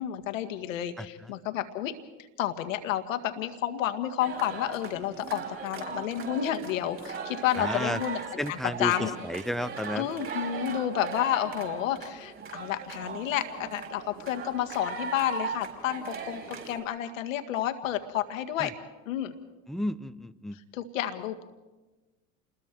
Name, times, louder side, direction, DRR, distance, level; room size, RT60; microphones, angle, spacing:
voice 1, 0.0-1.9 2.4-9.1 9.9-18.7 19.1-19.3 20.7-21.4, left 11 dB, 75° left, 8 dB, 1.8 m, -30 dB
sound 1, 4.2-16.8, right 5 dB, 30° right, 5.1 m, -38 dB
voice 2, 7.6-8.0 8.4-10.1 18.6-18.7 19.7-20.6, equal, ahead, 14 dB, 0.8 m, -32 dB
28.5 x 20.5 x 4.6 m, 1.2 s
hypercardioid pair, 80°, 39 cm